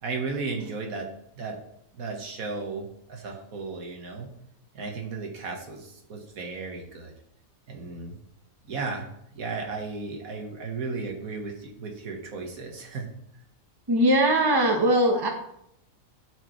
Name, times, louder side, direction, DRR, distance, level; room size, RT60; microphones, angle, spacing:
voice 1, 0.0-1.6 1.9-4.3 4.7-7.1 7.7-8.2 8.6-13.1, right 4 dB, 85° right, 2 dB, 1.7 m, -35 dB
voice 2, 13.9-15.3, right 1 dB, 20° right, 3 dB, 0.9 m, -20 dB
12.0 x 4.7 x 3.1 m, 0.74 s
omnidirectional pair, 1.4 m